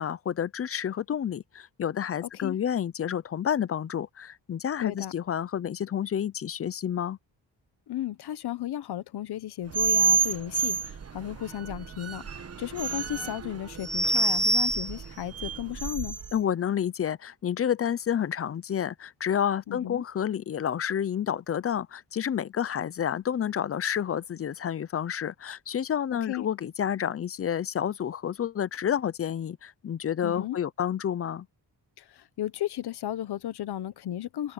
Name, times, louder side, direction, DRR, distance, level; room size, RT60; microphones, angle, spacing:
voice 1, 0.0-7.2 16.3-31.5, left 9 dB, 35° left, 0.5 m, -29 dB
voice 2, 2.2-2.6 4.8-5.1 7.9-16.2 19.7-20.0 26.3-26.4 30.2-30.6 32.0-34.5, left 12 dB, 65° left, 1.0 m, -34 dB
sound 1, 9.7-16.4, right 4 dB, 35° right, 1.2 m, -28 dB
wide cardioid pair, 170°, 41 cm